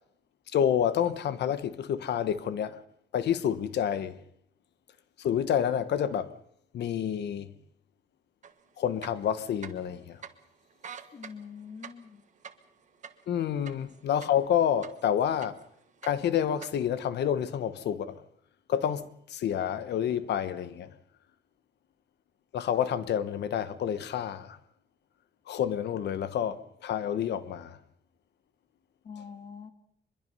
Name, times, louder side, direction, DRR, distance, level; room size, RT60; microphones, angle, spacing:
voice 1, 0.5-2.8 3.1-4.2 5.2-6.3 6.7-7.5 8.8-10.2 13.3-15.6 16.0-18.2 18.7-20.9 22.5-24.6 25.5-27.8, left 9 dB, 70° left, 1.1 m, -29 dB
sound 1, 8.4-8.5 8.9-9.9 10.2-10.3 10.7-14.5 14.8-15.7 16.0-16.7, right 7 dB, 40° right, 1.3 m, -45 dB
voice 2, 11.1-12.2 29.0-29.7, left 6 dB, 35° left, 1.9 m, -44 dB
24.0 x 22.0 x 5.5 m
wide cardioid pair, 175°, 18 cm